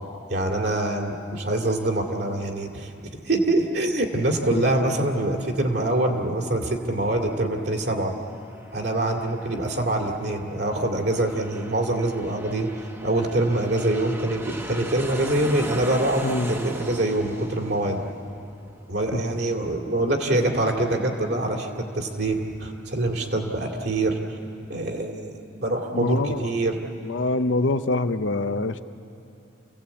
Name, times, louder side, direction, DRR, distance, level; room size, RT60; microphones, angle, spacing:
voice 1, 0.3-2.9 3.2-8.1 8.7-12.7 13.0-18.0 18.9-24.4 24.7-26.8, right 1 dB, 60° right, 1 dB, 2.5 m, -25 dB
Aircraft, 8.2-19.4, right 1 dB, 10° right, 1.0 m, -39 dB
voice 2, 16.2-16.5 19.1-19.2 25.9-26.5 27.0-28.8, left 2 dB, 80° left, 10 dB, 0.8 m, -25 dB
28.5 x 17.0 x 8.4 m, 2.7 s
head